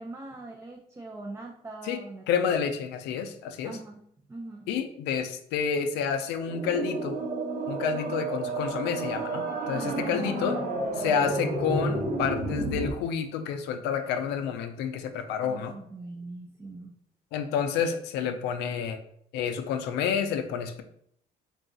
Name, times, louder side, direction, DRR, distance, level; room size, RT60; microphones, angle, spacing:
voice 1, 0.0-2.6 3.6-4.0 4.3-4.7 9.7-10.2 15.4-16.9, right 2 dB, 15° right, 0 dB, 0.5 m, -42 dB
voice 2, 2.3-3.8 4.7-7.2 7.7-10.6 10.9-15.7 17.3-19.0 19.3-20.8, left 7 dB, 85° left, 7 dB, 0.5 m, -29 dB
sound 1, 6.4-12.9, right 2 dB, 55° right, 0.9 m, -31 dB
3.8 x 2.4 x 3.8 m, 0.67 s
cardioid pair, 110°, 17 cm